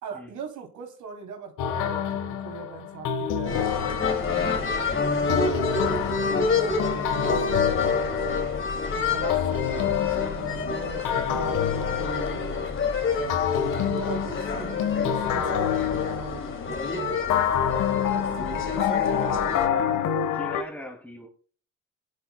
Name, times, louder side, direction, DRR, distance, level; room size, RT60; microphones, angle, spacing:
voice 1, 0.0-5.8 6.3-8.4 8.9-12.4 13.1-17.2 17.7-20.0, right 6 dB, 75° right, 3 dB, 3.1 m, -40 dB
sound 1, 1.6-4.7 5.3-8.8 9.3-12.8 13.3-16.8 17.3-20.6, left 8 dB, 85° left, 1.4 m, -28 dB
sound 2, 3.4-19.7, left 5 dB, 40° left, 2.6 m, -28 dB
voice 2, 20.3-21.3, left 1 dB, 5° left, 0 dB, 2.4 m, -39 dB
18.0 x 11.0 x 2.2 m, 0.41 s
cardioid pair, 90°, 30 cm